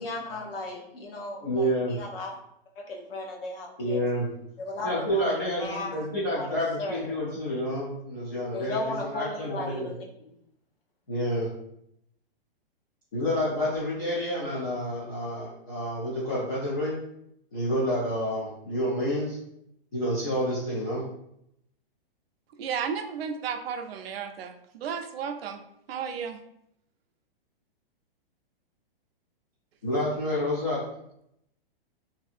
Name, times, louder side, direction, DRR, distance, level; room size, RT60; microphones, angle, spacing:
voice 1, 0.0-2.4 2.8-4.0 4.6-7.1 8.5-10.4, left 2 dB, 70° left, 1 dB, 0.8 m, -36 dB
voice 2, 1.4-2.0 3.8-4.3 4.8-9.9 11.1-11.5 13.1-16.9 17.5-19.4 19.9-21.0 29.8-30.8, equal, 20° left, -9 dB, 0.3 m, -29 dB
voice 3, 22.6-25.6 25.9-26.4, right 7 dB, 85° right, 6 dB, 0.5 m, -33 dB
2.6 x 2.5 x 2.4 m, 0.77 s
hypercardioid pair, 170°, 30 cm